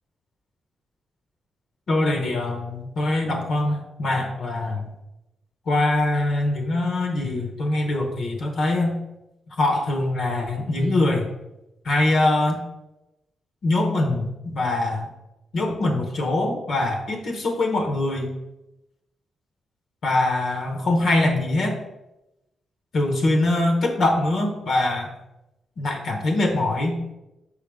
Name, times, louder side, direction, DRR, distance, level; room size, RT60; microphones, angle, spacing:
voice 1, 1.9-4.8 5.7-9.0 9.6-11.3 11.8-12.6 13.6-15.1 15.5-18.3 20.0-21.8 22.9-25.1 25.8-27.0, left 2 dB, 55° left, 2 dB, 0.9 m, -23 dB
5.8 x 4.9 x 3.5 m, 0.93 s
wide cardioid pair, 160°, 0 cm